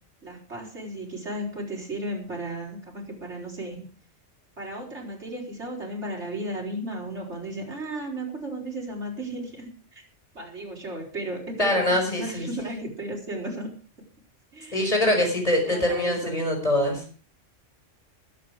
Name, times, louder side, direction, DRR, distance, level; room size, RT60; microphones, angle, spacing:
voice 1, 0.2-3.9 4.6-10.0 10.3-13.7 14.5-14.9 15.5-16.4, right 1 dB, 65° right, -1 dB, 5.0 m, -34 dB
voice 2, 11.6-12.5 14.7-17.0, left 1 dB, 30° left, 2 dB, 5.8 m, -23 dB
20.5 x 8.7 x 4.9 m, 0.40 s
omnidirectional pair, 1.3 m